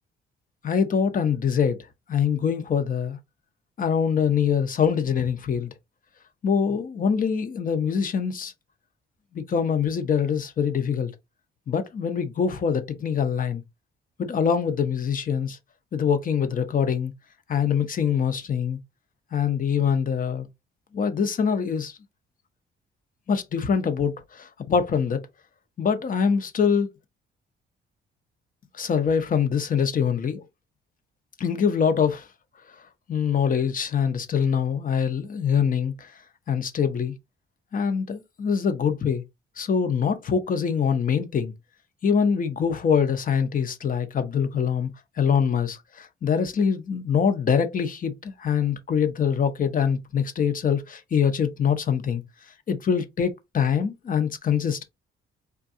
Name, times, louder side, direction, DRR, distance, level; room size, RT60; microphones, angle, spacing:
voice 1, 0.6-1.8 2.1-3.2 3.8-5.7 6.4-8.5 9.3-11.1 11.7-13.6 14.2-15.6 15.9-17.1 17.5-18.8 19.3-20.5 20.9-22.0 23.3-25.2 25.8-26.9 28.8-30.4 31.4-32.3 33.1-36.1 36.5-37.1 37.7-39.2 39.6-41.5 42.0-44.9 45.2-52.2 52.7-54.8, left 7 dB, 45° left, 0.7 m, -24 dB
3.6 x 2.3 x 2.6 m
cardioid pair, 90°, 20 cm